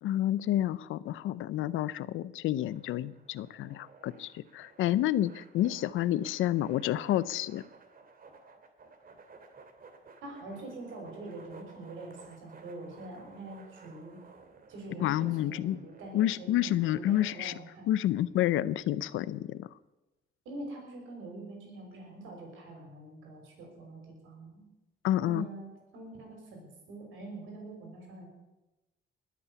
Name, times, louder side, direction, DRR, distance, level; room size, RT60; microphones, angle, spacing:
voice 1, 0.0-7.6 15.0-15.8 16.1-17.5 17.9-19.7 25.0-25.5, left 13 dB, 85° left, 18 dB, 0.6 m, -29 dB
sound 1, 2.6-17.3, right 4 dB, 45° right, 2.5 m, -56 dB
voice 2, 10.2-14.2 14.7-17.9 20.4-24.6 25.1-25.7 25.9-28.3, right 2 dB, 85° right, 1 dB, 6.1 m, -44 dB
20.5 x 8.6 x 7.0 m, 1.0 s
cardioid pair, 90°, 20 cm